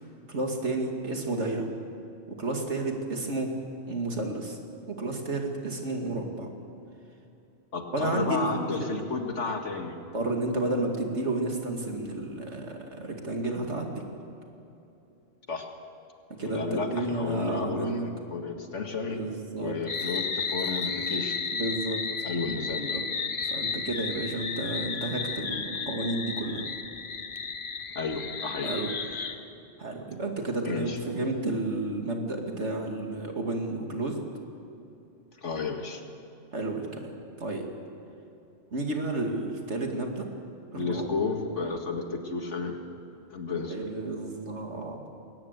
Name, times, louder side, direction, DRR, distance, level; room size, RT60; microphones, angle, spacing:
voice 1, 0.3-1.7 2.3-3.5 3.9-4.6 4.9-6.5 7.9-8.7 10.1-14.0 16.4-18.1 19.1-19.7 21.5-22.0 22.9-23.0 23.4-26.6 28.6-28.9 29.8-34.2 36.5-37.7 38.7-40.3 40.7-41.2 43.5-45.0, right 2 dB, 65° right, 2 dB, 2.6 m, -31 dB
voice 2, 7.7-9.9 15.5-15.7 16.4-19.2 19.6-21.4 22.2-23.0 28.0-28.7 30.7-31.0 35.4-36.0 40.7-42.8 43.3-43.8, left 4 dB, 70° left, 4 dB, 2.2 m, -32 dB
sound 1, 19.9-29.4, left 5 dB, 45° left, 1.2 m, -33 dB
21.0 x 18.5 x 8.2 m, 2.8 s
omnidirectional pair, 1.3 m